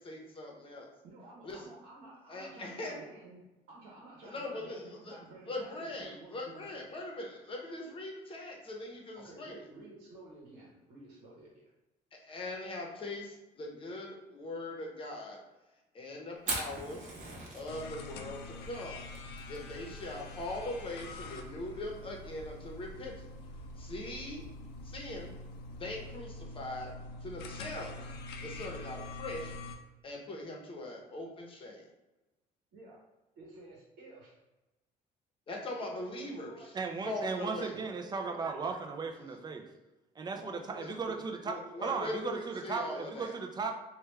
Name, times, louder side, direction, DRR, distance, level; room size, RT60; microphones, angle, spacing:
voice 1, 0.0-0.9 1.4-1.6 2.3-3.0 4.2-5.2 5.5-9.6 12.1-15.4 15.9-17.1 17.5-19.0 19.5-23.3 23.8-24.5 24.8-25.3 25.7-26.9 27.2-27.9 28.4-29.5 30.0-31.8 35.5-36.5 37.1-37.7 40.8-41.2 41.4-43.3, left 2 dB, 30° left, 0 dB, 0.8 m, -41 dB
voice 2, 1.0-6.9 8.8-11.6 32.7-33.0 33.4-34.4 35.8-37.4 37.7-38.7 40.3-40.9, right 2 dB, 90° right, -4 dB, 0.9 m, -52 dB
Fire, 16.4-26.2, right 2 dB, 50° right, 0.9 m, -45 dB
sound 1, 17.7-29.8, left 2 dB, 85° left, 0.5 m, -45 dB
voice 3, 36.7-39.7 40.2-43.8, right 4 dB, 25° right, 4 dB, 0.4 m, -36 dB
3.3 x 2.3 x 3.2 m, 1.1 s
cardioid pair, 110°, 17 cm